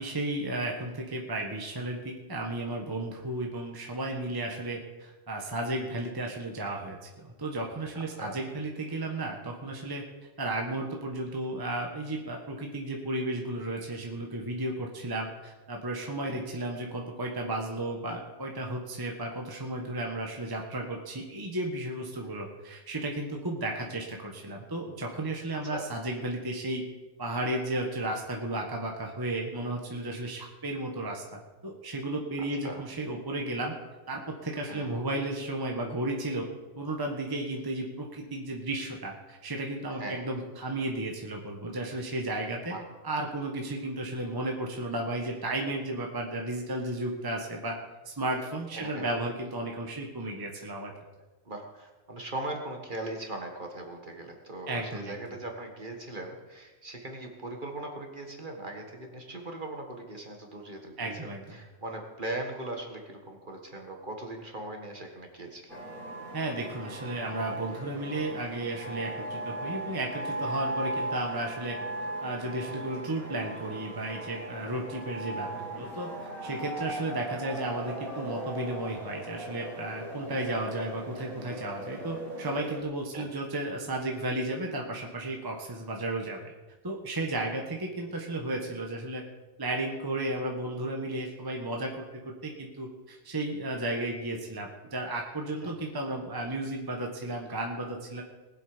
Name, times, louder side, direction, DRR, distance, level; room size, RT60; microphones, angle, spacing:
voice 1, 0.0-10.0 10.4-26.8 27.2-33.7 34.1-36.5 36.8-42.7 43.0-47.7 48.0-50.9 54.7-55.2 61.0-61.6 66.3-71.8 72.2-76.1 76.4-86.5 86.8-89.2 89.6-98.2, right 1 dB, 15° right, 1 dB, 1.3 m, -34 dB
voice 2, 8.0-8.4 16.2-16.4 22.2-22.3 25.7-25.9 32.6-32.8 34.7-35.0 40.0-40.2 42.6-42.8 48.7-49.1 51.5-65.8 83.1-83.3 95.6-95.7, right 2 dB, 35° right, 2 dB, 1.8 m, -39 dB
sound 1, 65.7-82.8, right 1 dB, 75° right, 3.2 m, -38 dB
20.5 x 7.8 x 5.1 m, 1.2 s
omnidirectional pair, 1.5 m